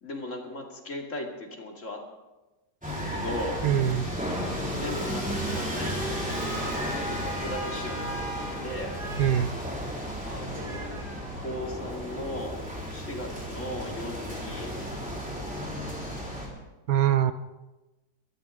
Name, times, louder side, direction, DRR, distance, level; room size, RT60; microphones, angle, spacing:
voice 1, 0.0-2.0 2.8-4.1 4.7-9.0 10.2-11.1 11.3-12.6 12.9-15.5 15.7-16.1, left 1 dB, 50° left, 1 dB, 2.6 m, -38 dB
sound 1, 2.8-16.5, equal, 5° right, 3.8 m, -33 dB
voice 2, 3.6-4.1 9.2-9.5 16.9-17.3, right 11 dB, 70° right, 11 dB, 1.1 m, -23 dB
Animal, 5.3-12.0, right 3 dB, 35° right, 1.9 m, -44 dB
23.5 x 14.0 x 3.6 m, 1.1 s
omnidirectional pair, 1.7 m